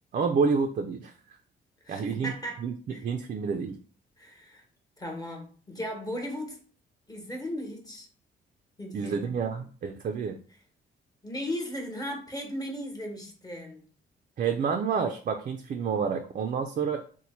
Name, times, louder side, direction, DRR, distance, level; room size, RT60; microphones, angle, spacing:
voice 1, 0.1-1.1 1.9-2.3 2.6-2.7 3.0-3.8 8.9-10.4 14.4-17.0, right 5 dB, 40° right, 5 dB, 0.4 m, -28 dB
voice 2, 1.8-2.6 2.9-3.0 4.2-4.6 5.0-6.6 7.1-8.1 8.8-9.3 11.2-13.8, equal, 20° left, 1 dB, 1.1 m, -36 dB
3.0 x 2.1 x 4.1 m, 0.42 s
cardioid pair, 90°, 20 cm